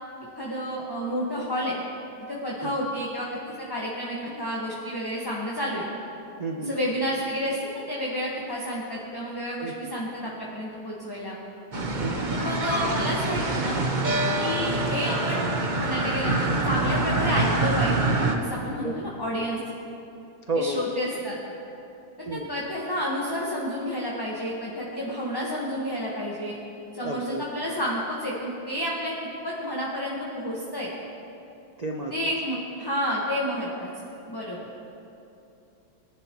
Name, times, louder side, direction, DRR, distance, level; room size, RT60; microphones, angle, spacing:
voice 1, 0.3-1.8 2.3-5.8 6.6-11.4 12.3-13.8 14.4-15.5 15.8-19.6 20.6-21.4 22.2-26.6 26.9-29.1 29.4-30.9 32.1-33.9 34.3-34.6, equal, 15° left, -5 dB, 1.1 m, -30 dB
voice 2, 6.4-6.7 9.6-10.0 12.0-12.3 18.8-18.9 20.5-20.8 22.2-22.5 27.0-27.4 31.8-32.3, right 2 dB, 75° right, 0 dB, 0.3 m, -31 dB
sound 1, 11.7-18.3, right 2 dB, 35° right, 0.8 m, -25 dB
22.5 x 11.0 x 3.1 m, 2.8 s
omnidirectional pair, 2.1 m